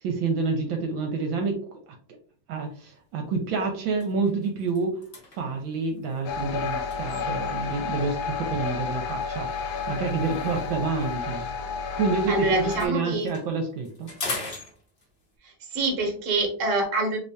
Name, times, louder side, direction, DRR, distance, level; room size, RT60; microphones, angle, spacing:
voice 1, 0.0-1.9 2.5-5.0 5.3-11.5 12.0-12.5 12.8-14.1, right 4 dB, 75° right, 3 dB, 1.4 m, -28 dB
sound 1, 2.7-2.9 3.4-3.5 3.9-7.8 8.7-12.2 12.5-15.4, left 2 dB, 45° left, 0.7 m, -41 dB
sound 2, 6.2-12.9, left 5 dB, 80° left, 1.4 m, -31 dB
voice 2, 12.3-13.3 15.7-17.2, right 2 dB, 45° right, 1 dB, 1.2 m, -25 dB
3.3 x 3.3 x 2.6 m, 0.44 s
omnidirectional pair, 2.3 m